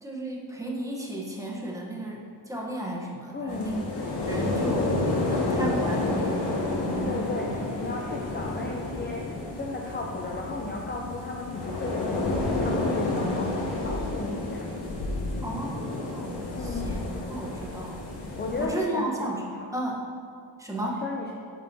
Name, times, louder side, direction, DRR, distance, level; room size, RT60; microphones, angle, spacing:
voice 1, 0.0-3.9 4.3-4.9 5.4-6.7 15.4-18.0 18.6-20.1 20.6-21.0, right 1 dB, 5° right, -3 dB, 1.0 m, -34 dB
voice 2, 3.3-3.8 7.1-14.7 16.5-17.1 18.4-19.1 20.8-21.3, left 3 dB, 25° left, -1 dB, 0.5 m, -35 dB
sound 1, 3.5-18.7, left 2 dB, 65° left, 1.7 m, -30 dB
9.7 x 8.1 x 2.7 m, 2.3 s
wide cardioid pair, 175°, 44 cm